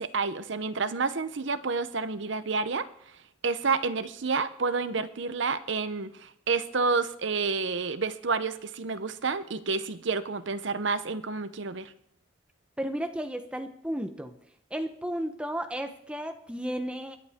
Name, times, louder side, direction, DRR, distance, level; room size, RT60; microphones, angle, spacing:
voice 1, 0.0-3.1 3.4-11.9, right 4 dB, 70° right, 12 dB, 0.8 m, -29 dB
voice 2, 12.8-14.4 14.7-17.2, equal, 5° right, 6 dB, 0.9 m, -33 dB
21.5 x 10.0 x 3.6 m, 0.71 s
head